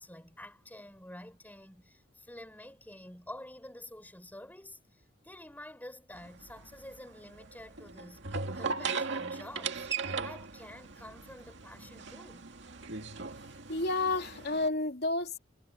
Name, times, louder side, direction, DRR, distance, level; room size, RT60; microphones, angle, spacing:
voice 1, 0.0-8.3 8.5-12.5, left 1 dB, 10° left, 6.8 m, -49 dB
sound 1, 6.1-14.7, right 4 dB, 65° right, 2.3 m, -38 dB
voice 2, 13.7-15.4, left 2 dB, 55° left, 3.0 m, -30 dB
head